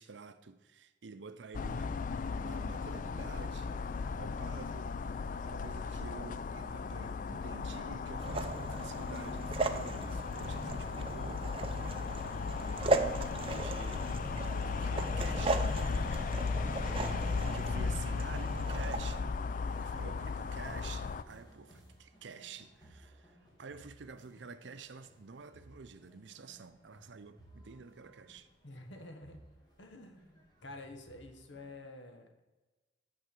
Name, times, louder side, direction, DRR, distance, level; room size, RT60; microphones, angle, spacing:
voice 1, 0.0-2.0 2.3-3.8 4.1-4.9 5.2-17.0 17.4-19.4 19.6-28.5, right 4 dB, 70° right, 0.6 m, -49 dB
sound 1, 1.5-21.2, left 4 dB, 45° left, 0.3 m, -36 dB
voice 2, 2.6-3.2 28.6-29.4 29.8-32.3, left 2 dB, 75° left, 1.1 m, -50 dB
sound 2, 8.2-19.2, right 2 dB, 30° right, 0.5 m, -37 dB
sound 3, 13.1-31.8, equal, 25° left, 2.2 m, -62 dB
8.6 x 4.7 x 7.6 m
head